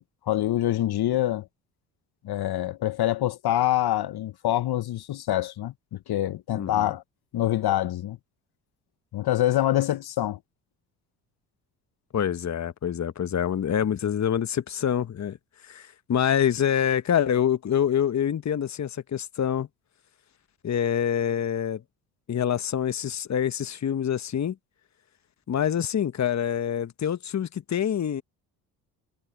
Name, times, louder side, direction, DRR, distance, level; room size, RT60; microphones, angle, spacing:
voice 1, 0.0-1.5 2.2-7.0 7.3-8.2 9.1-10.4, left 13 dB, 50° left, 1.3 m, -25 dB
voice 2, 12.1-15.4 15.6-19.7 20.6-21.8 22.3-24.5 25.5-28.2, left 9 dB, 35° left, 1.3 m, -26 dB
hypercardioid pair, 55°, 48 cm